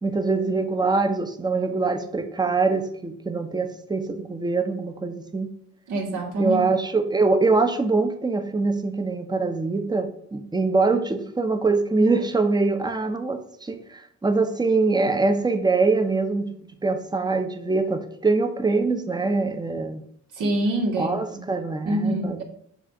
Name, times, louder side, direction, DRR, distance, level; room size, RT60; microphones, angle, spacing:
voice 1, 0.0-5.5 6.4-16.5 16.8-20.0 21.0-22.4, right 3 dB, 15° right, 8 dB, 0.7 m, -23 dB
voice 2, 5.9-6.6 20.3-21.2 21.9-22.4, right 1 dB, 85° right, -1 dB, 1.7 m, -25 dB
7.1 x 2.5 x 5.6 m, 0.69 s
cardioid pair, 90°, 30 cm